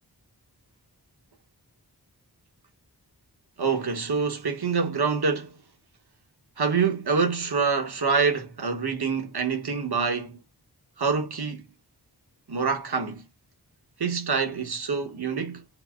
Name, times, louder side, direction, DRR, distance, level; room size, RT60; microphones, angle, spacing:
voice 1, 3.6-5.5 6.6-10.4 11.0-11.6 12.5-13.2 14.0-15.6, right 5 dB, 65° right, 1.0 m, -26 dB
4.0 x 2.0 x 2.3 m
wide cardioid pair, 55°, 41 cm